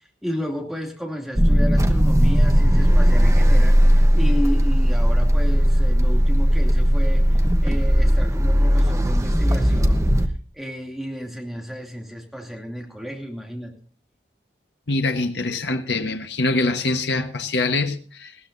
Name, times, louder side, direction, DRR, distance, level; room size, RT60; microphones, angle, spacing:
voice 1, 0.0-10.1 10.5-13.8, equal, ahead, 2.6 m, -32 dB
sound 1, 1.4-10.3, equal, 15° right, 1.0 m, -17 dB
voice 2, 14.9-18.4, left 2 dB, 75° left, 1.3 m, -24 dB
19.5 x 16.0 x 2.7 m
head